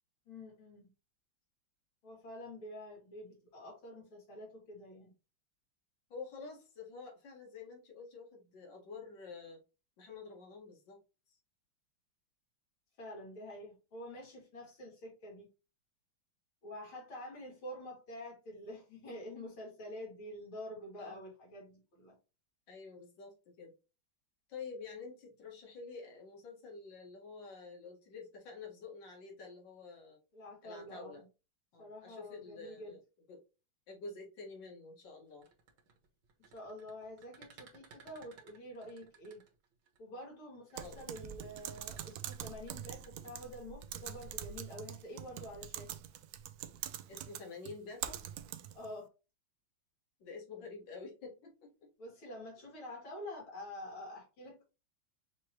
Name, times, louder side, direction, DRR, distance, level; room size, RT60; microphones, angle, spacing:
voice 1, 0.3-0.9 2.0-5.1 13.0-15.5 16.6-22.1 30.3-31.3 31.8-33.0 36.4-39.4 40.0-46.0 48.7-49.1 52.0-54.6, left 1 dB, 80° left, -2 dB, 3.2 m, -47 dB
voice 2, 6.1-9.6 10.0-11.0 11.3-11.4 21.0-21.2 22.7-23.7 24.5-30.2 30.6-31.2 31.7-33.0 33.3-33.4 33.9-35.5 40.8-41.0 47.1-48.3 50.2-51.9, left 4 dB, 65° left, -1 dB, 2.4 m, -49 dB
sound 1, 35.3-40.0 40.7-43.3, right 5 dB, 70° right, 2.0 m, -59 dB
Typing, 40.8-48.9, right 10 dB, 90° right, 0.8 m, -44 dB
5.9 x 3.1 x 2.9 m, 0.30 s
omnidirectional pair, 2.2 m